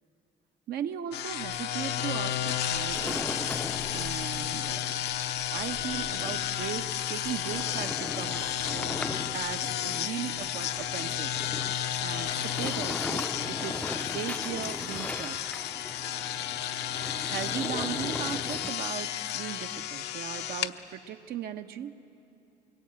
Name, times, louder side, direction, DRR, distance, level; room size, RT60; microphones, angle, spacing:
voice 1, 0.7-3.4 3.9-4.9 5.5-11.3 11.7-15.6 17.2-21.9, right 9 dB, 70° right, 7 dB, 1.1 m, -38 dB
sound 1, 1.1-20.7, left 10 dB, 80° left, 0.9 m, -32 dB
sound 2, 2.0-18.7, left 2 dB, 10° left, 0.5 m, -40 dB
25.0 x 23.0 x 8.8 m, 2.9 s
cardioid pair, 110°, 17 cm